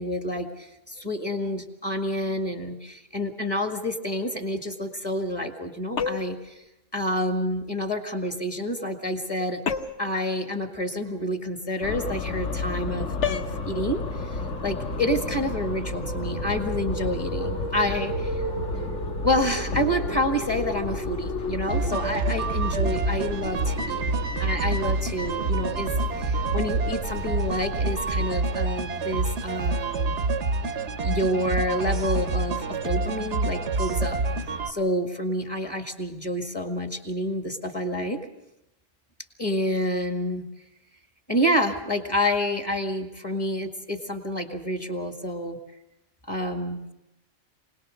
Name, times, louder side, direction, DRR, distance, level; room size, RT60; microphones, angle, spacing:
voice 1, 0.0-6.6 6.9-9.6 10.0-18.4 19.2-24.0 24.4-25.9 26.2-30.1 31.0-34.2 34.7-38.2 39.4-40.5 41.3-45.6 46.3-46.9, equal, 20° left, 4 dB, 1.9 m, -28 dB
sound 1, 6.0-6.5 9.7-10.1 13.2-13.6, left 7 dB, 70° left, 1.3 m, -28 dB
sound 2, 11.8-28.2, left 2 dB, 85° left, 1.8 m, -32 dB
sound 3, 21.7-34.7, right 3 dB, 65° right, 1.3 m, -27 dB
25.5 x 19.0 x 6.5 m, 0.90 s
omnidirectional pair, 1.3 m